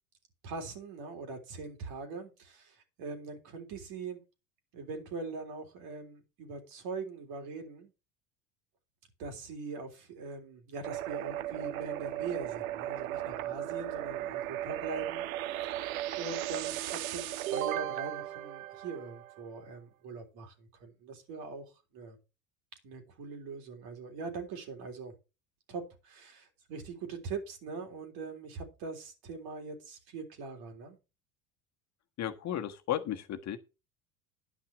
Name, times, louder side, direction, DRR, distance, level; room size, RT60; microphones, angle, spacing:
voice 1, 0.4-4.2 4.7-7.9 9.2-15.2 15.6-22.2 22.8-25.1 25.7-31.0, right 4 dB, 60° right, 3.6 m, -42 dB
sound 1, 10.8-19.5, right 13 dB, 80° right, 0.7 m, -36 dB
voice 2, 32.2-33.6, left 11 dB, 40° left, 1.3 m, -34 dB
10.5 x 5.7 x 6.0 m
hypercardioid pair, 85°, 41 cm